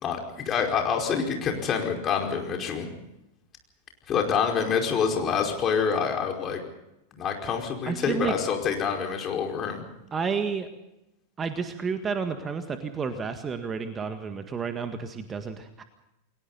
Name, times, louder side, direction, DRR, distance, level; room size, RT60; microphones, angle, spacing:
voice 1, 0.0-2.9 4.1-6.6 7.1-9.8, left 6 dB, 30° left, 2 dB, 5.0 m, -27 dB
voice 2, 7.9-8.3 10.1-10.7 11.4-15.8, right 5 dB, 20° right, 8 dB, 1.8 m, -31 dB
30.0 x 22.0 x 4.1 m, 0.88 s
figure-of-eight pair, 90°, 0 cm